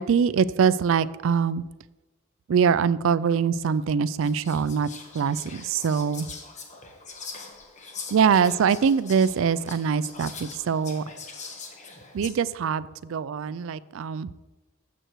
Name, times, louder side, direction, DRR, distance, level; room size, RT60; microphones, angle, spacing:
voice 1, 0.0-1.6 2.5-4.9 5.1-6.3 8.1-11.0 12.1-14.3, right 6 dB, 65° right, 17 dB, 0.3 m, -23 dB
Whispering, 3.6-3.7 4.2-12.3, left 4 dB, 35° left, 1.2 m, -42 dB
13.0 x 7.8 x 3.1 m, 1.1 s
head